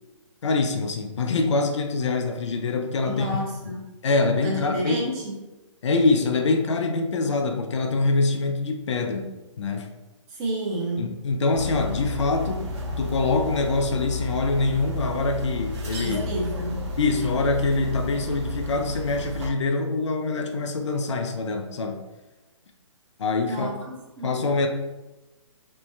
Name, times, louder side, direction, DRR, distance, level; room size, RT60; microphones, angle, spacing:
voice 1, 0.4-3.4 3.7-3.8 4.0-5.0 5.8-9.9 11.0-12.7 13.0-16.2 17.0-22.0 23.2-23.7 24.2-24.7, left 3 dB, 65° left, 4 dB, 0.5 m, -24 dB
voice 2, 3.0-3.8 4.4-5.3 10.3-11.1 15.9-16.9 23.5-24.3, right 1 dB, 20° right, -3 dB, 0.7 m, -30 dB
sound 1, 11.5-19.5, left 2 dB, 55° right, 0.7 m, -32 dB
3.2 x 2.1 x 3.1 m, 1.1 s
figure-of-eight pair, 135°, 17 cm